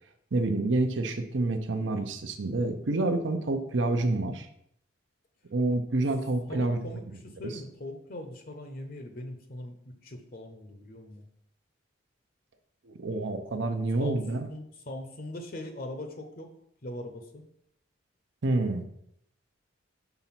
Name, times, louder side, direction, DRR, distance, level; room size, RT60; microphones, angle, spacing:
voice 1, 0.3-4.5 5.5-6.8 7.4-7.6 12.9-14.5 18.4-18.9, right 2 dB, 65° right, 6 dB, 0.7 m, -28 dB
voice 2, 6.5-7.0 7.4-11.2 14.0-14.2 14.5-16.5 16.8-17.4, left 1 dB, 45° left, 5 dB, 0.7 m, -40 dB
5.9 x 3.9 x 5.8 m, 0.71 s
head